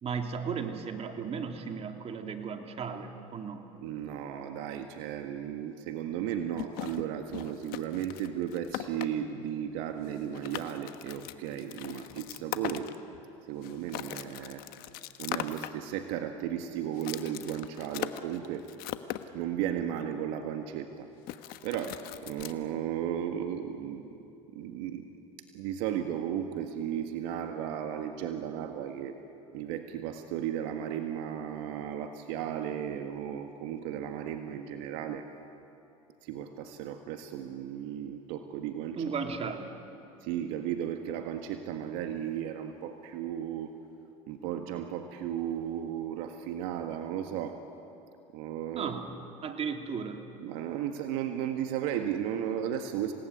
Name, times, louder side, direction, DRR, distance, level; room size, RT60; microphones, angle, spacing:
voice 1, 0.0-3.7 39.0-39.7 48.7-49.1 49.4-50.3, right 6 dB, 35° right, 5 dB, 2.8 m, -35 dB
voice 2, 3.8-12.9 13.5-14.6 15.2-18.6 19.3-21.1 21.6-24.1 24.5-25.1 25.5-29.1 29.5-35.3 36.2-39.0 39.4-39.5 40.2-43.7 44.3-47.6 48.3-48.9 50.4-53.1, right 10 dB, 70° right, 6 dB, 1.7 m, -35 dB
sound 1, 6.6-9.1 10.0-10.1 10.3-13.2 13.6-15.7 17.0-19.3 21.3-22.5, left 15 dB, 65° left, 1.3 m, -39 dB
27.0 x 18.5 x 9.9 m, 2.8 s
supercardioid pair, 90°, 17 cm